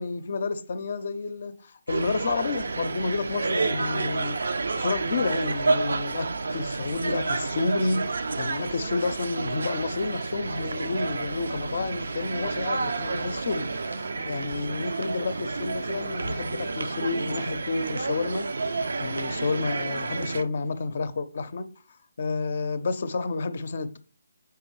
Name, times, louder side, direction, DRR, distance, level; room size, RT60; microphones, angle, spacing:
voice 1, 0.0-18.5 18.7-21.7 22.2-24.0, left 3 dB, 50° left, 0.5 m, -30 dB
sound 1, 1.9-20.4, right 3 dB, 70° right, 0.4 m, -30 dB
4.7 x 3.5 x 3.1 m
figure-of-eight pair, 150°, 0 cm